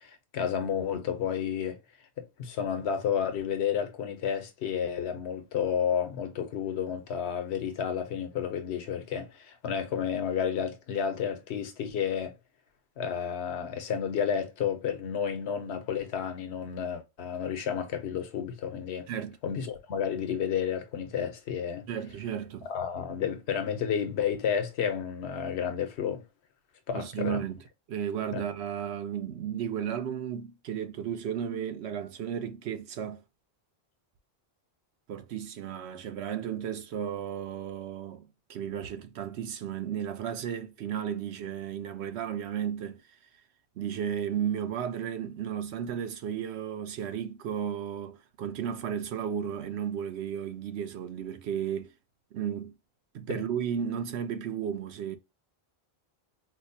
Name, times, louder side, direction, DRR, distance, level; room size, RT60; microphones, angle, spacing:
voice 1, 0.0-1.8 2.2-12.3 13.0-19.1 19.4-21.9 22.7-26.2 26.9-27.4 28.3-28.4 53.3-53.4, left 8 dB, 85° left, 1.0 m, -31 dB
voice 2, 21.9-22.7 26.9-27.6 27.9-33.2 35.1-43.0 43.8-51.9 52.3-52.8 53.1-55.2, right 8 dB, 90° right, 0.9 m, -34 dB
4.4 x 2.1 x 2.6 m
omnidirectional pair, 1.1 m